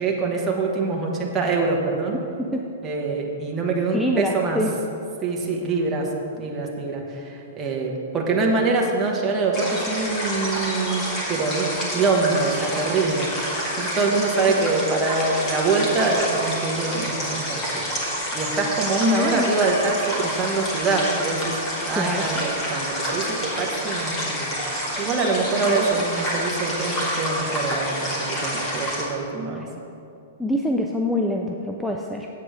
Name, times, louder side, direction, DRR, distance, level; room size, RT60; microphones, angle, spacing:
voice 1, 0.0-2.2 2.8-4.6 5.2-6.1 6.4-7.0 7.5-11.0 11.3-11.7 11.9-13.3 13.8-17.8 18.3-21.6 21.9-24.6 25.0-29.7, right 3 dB, 15° right, -2 dB, 1.1 m, -24 dB
voice 2, 3.9-4.7 14.5-14.7 19.0-19.5 21.9-22.5 25.7-26.0 29.5-29.7 30.4-32.3, left 1 dB, ahead, 0 dB, 0.4 m, -26 dB
sound 1, 9.5-29.0, equal, 20° left, 1.8 m, -28 dB
8.5 x 8.1 x 4.9 m, 2.7 s
hypercardioid pair, 165°, 0 cm